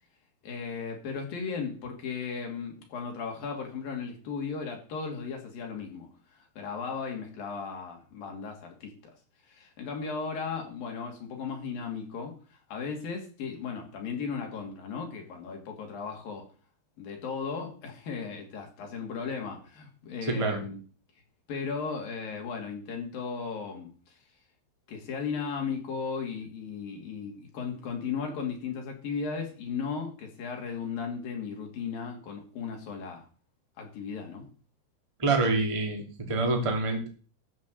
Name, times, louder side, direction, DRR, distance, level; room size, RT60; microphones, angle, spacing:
voice 1, 0.4-8.9 9.5-16.5 17.0-20.8 21.5-23.9 24.9-33.3 33.8-34.5, left 5 dB, 55° left, 4.2 m, -36 dB
voice 2, 35.2-37.1, right 3 dB, 10° right, 1.6 m, -26 dB
13.5 x 6.1 x 7.8 m
omnidirectional pair, 5.3 m